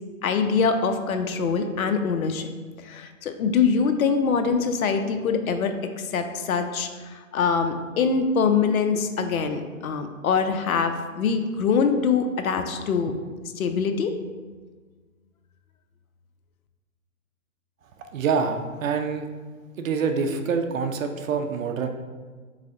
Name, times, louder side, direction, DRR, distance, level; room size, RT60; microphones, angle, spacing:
voice 1, 0.2-2.5 2.8-13.1 13.6-14.1, left 5 dB, 85° left, 7 dB, 0.6 m, -24 dB
voice 2, 18.1-19.3 19.8-21.9, right 5 dB, 70° right, 6 dB, 0.6 m, -26 dB
3.9 x 3.2 x 3.6 m, 1.4 s
hypercardioid pair, 140°, 41 cm